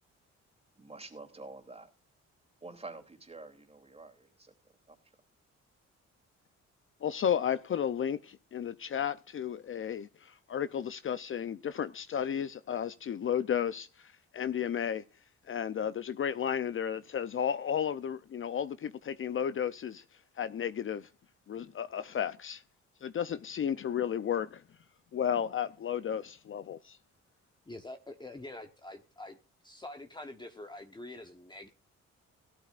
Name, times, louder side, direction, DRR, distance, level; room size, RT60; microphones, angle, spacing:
voice 1, 0.7-1.9 2.6-4.5 4.9-5.0, right 3 dB, 20° right, 2.9 m, -48 dB
voice 2, 7.0-15.0 15.5-20.0 20.4-21.1 21.5-22.6 23.0-24.6 25.1-27.0, left 8 dB, 45° left, 0.6 m, -33 dB
voice 3, 27.7-29.4 29.6-31.7, left 2 dB, 15° left, 1.1 m, -45 dB
17.0 x 12.5 x 2.5 m
cardioid pair, 110°, 29 cm